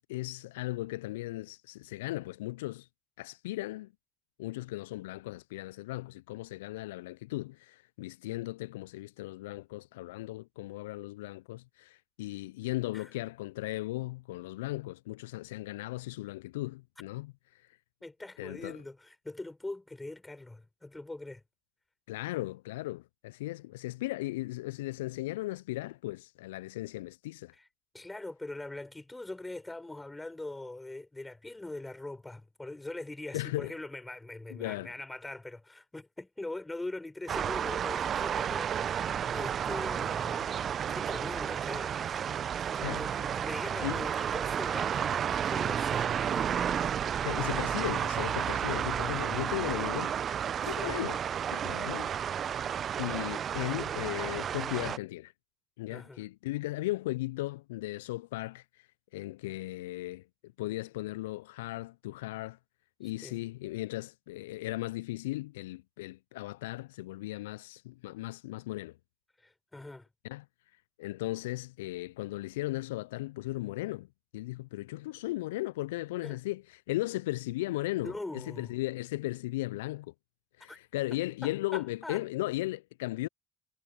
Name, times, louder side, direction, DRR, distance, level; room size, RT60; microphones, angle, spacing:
voice 1, 0.0-2.9 3.2-3.9 4.4-17.8 18.4-18.8 22.1-27.5 33.3-33.7 34.5-34.9 42.8-43.3 43.8-44.0 47.2-50.1 50.6-51.2 51.5-52.1 52.5-52.7 53.0-55.3 55.8-62.6 63.0-69.0 70.2-70.5 71.0-74.1 74.3-80.1 80.6-83.3, left 18 dB, 75° left, 0.4 m, -37 dB
voice 2, 18.0-21.4 27.6-27.7 27.9-40.6 40.9-42.2 42.6-46.9 50.6-51.0 55.9-56.2 63.2-63.4 69.4-70.1 76.2-76.4 78.0-78.7 80.7-80.8 81.4-82.2, left 2 dB, 15° left, 6.1 m, -42 dB
sound 1, 37.3-55.0, right 8 dB, 45° right, 0.8 m, -32 dB
figure-of-eight pair, 55°, 0 cm